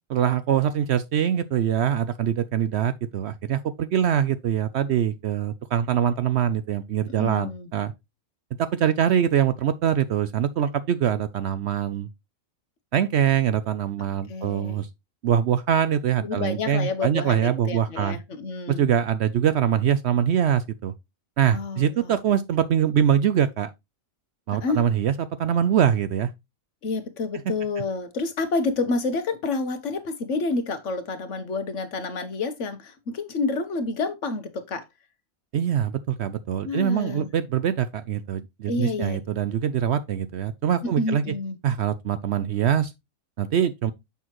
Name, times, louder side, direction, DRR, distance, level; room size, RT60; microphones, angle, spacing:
voice 1, 0.1-7.9 8.6-12.1 12.9-14.9 15.2-18.2 18.7-20.9 21.4-23.7 24.5-26.3 35.5-41.2 41.6-42.9 43.4-43.9, right 9 dB, 65° right, 0.7 m, -23 dB
voice 2, 7.2-7.7 14.3-14.8 16.2-18.9 21.5-22.1 24.6-24.8 26.8-34.8 36.6-37.3 38.7-39.2 40.8-41.6, left 3 dB, 60° left, 1.3 m, -29 dB
6.9 x 6.1 x 3.0 m
omnidirectional pair, 1.4 m